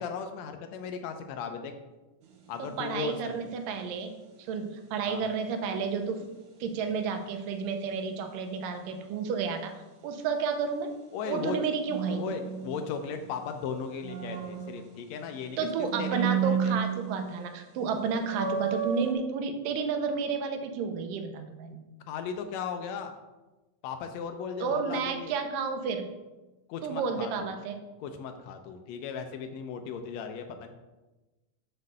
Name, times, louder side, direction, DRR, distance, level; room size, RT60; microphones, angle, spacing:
voice 1, 0.0-1.7 2.5-3.3 5.1-5.2 11.1-11.6 12.1-15.6 16.0-16.8 22.1-23.1 23.8-25.3 26.7-27.5 28.0-30.7, left 6 dB, 85° left, 6 dB, 1.5 m, -36 dB
sound 1, 2.2-2.6 11.9-13.3 13.7-15.4 15.9-17.4 17.8-17.9 18.3-19.1, right 7 dB, 70° right, 2.5 m, -32 dB
voice 2, 2.6-4.2 4.5-6.3 6.6-9.7 10.0-10.9 11.3-12.2 15.6-21.8 24.6-26.1 26.8-27.8, right 5 dB, 90° right, 6 dB, 2.4 m, -31 dB
6.2 x 5.3 x 6.6 m, 1.1 s
omnidirectional pair, 3.8 m